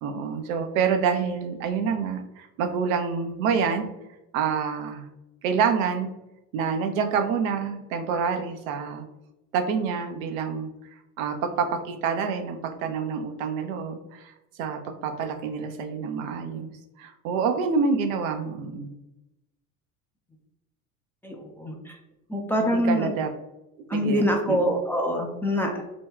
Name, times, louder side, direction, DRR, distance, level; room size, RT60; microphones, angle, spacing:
voice 1, 0.0-3.9 4.3-5.0 5.4-6.1 6.5-9.0 9.5-10.7 11.2-14.3 14.6-16.7 17.0-18.9 22.6-23.3 23.9-24.6, right 6 dB, 75° right, 6 dB, 0.6 m, -27 dB
voice 2, 21.2-22.0 22.3-23.1 23.9-25.8, equal, 5° left, 1 dB, 0.4 m, -25 dB
2.9 x 2.2 x 3.5 m, 0.95 s
hypercardioid pair, 75°, 42 cm